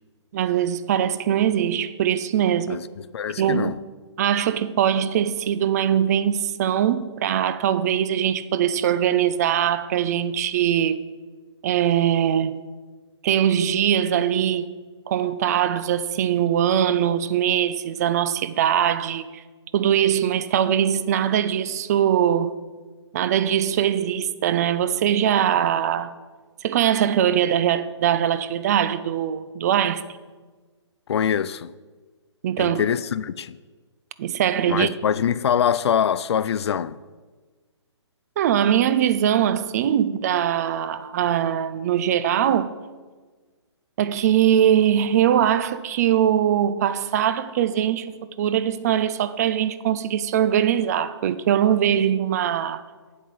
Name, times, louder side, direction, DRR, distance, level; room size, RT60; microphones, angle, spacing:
voice 1, 0.3-2.8 3.4-3.8 4.2-11.0 11.6-12.6 13.2-14.7 15.1-19.4 19.7-22.6 23.1-26.1 26.6-30.2 32.4-32.8 34.2-34.9 38.4-42.7 44.0-52.8, right 10 dB, 35° right, 0.4 m, -21 dB
voice 2, 3.1-3.8 31.1-31.7 32.6-33.6 34.7-37.0, left 8 dB, 60° left, 0.4 m, -24 dB
8.1 x 8.0 x 4.6 m
hypercardioid pair, 140°, 15 cm